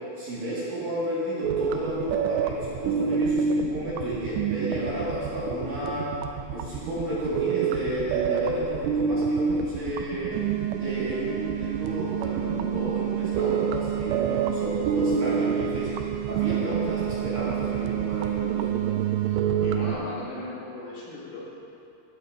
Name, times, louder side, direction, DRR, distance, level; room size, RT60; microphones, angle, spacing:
voice 1, 0.2-6.1 6.5-10.4 10.8-15.9 16.3-18.8, right 1 dB, 50° right, -8 dB, 3.3 m, -32 dB
sound 1, 1.4-20.0, right 8 dB, 85° right, 2.4 m, -27 dB
voice 2, 19.2-21.4, left 2 dB, 60° left, -8 dB, 4.6 m, -37 dB
16.5 x 8.6 x 4.6 m, 2.6 s
omnidirectional pair, 5.4 m